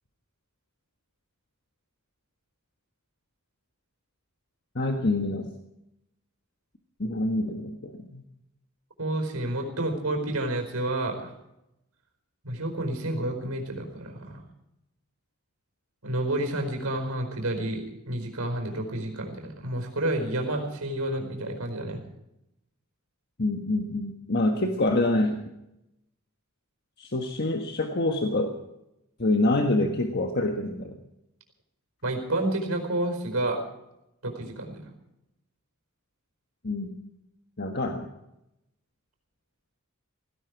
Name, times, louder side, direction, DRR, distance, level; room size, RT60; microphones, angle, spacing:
voice 1, 4.7-5.5 7.0-8.2 23.4-25.4 27.0-28.6 29.2-31.0 36.6-37.0 37.6-38.1, left 2 dB, 50° left, 4 dB, 1.5 m, -26 dB
voice 2, 9.0-11.3 12.4-14.4 16.0-22.0 32.0-33.6 34.2-34.9, right 1 dB, 85° right, 4 dB, 4.7 m, -30 dB
17.0 x 17.0 x 4.8 m, 0.86 s
head